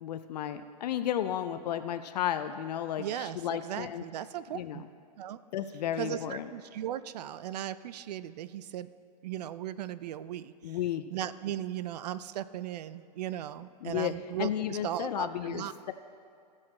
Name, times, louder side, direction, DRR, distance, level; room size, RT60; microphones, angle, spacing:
voice 1, 0.0-4.0 4.5-4.9 5.5-6.5 10.6-11.0 13.8-14.1 14.4-15.9, left 10 dB, 75° left, 10 dB, 0.5 m, -33 dB
voice 2, 3.0-4.8 5.2-5.4 6.0-8.9 9.2-10.8 11.1-15.7, right 11 dB, 70° right, 15 dB, 0.5 m, -37 dB
15.5 x 6.3 x 4.3 m, 2.3 s
supercardioid pair, 155°, 21 cm